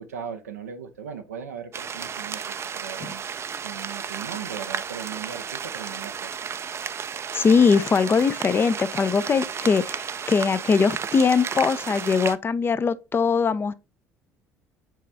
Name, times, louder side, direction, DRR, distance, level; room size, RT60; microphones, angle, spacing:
voice 1, 0.0-3.2 3.6-6.3, right 7 dB, 80° right, 0.6 m, -38 dB
sound 1, 1.7-12.4, right 7 dB, 35° right, 0.5 m, -33 dB
voice 2, 7.3-13.7, left 5 dB, 30° left, 0.6 m, -21 dB
7.5 x 4.1 x 3.3 m
figure-of-eight pair, 55°, 8 cm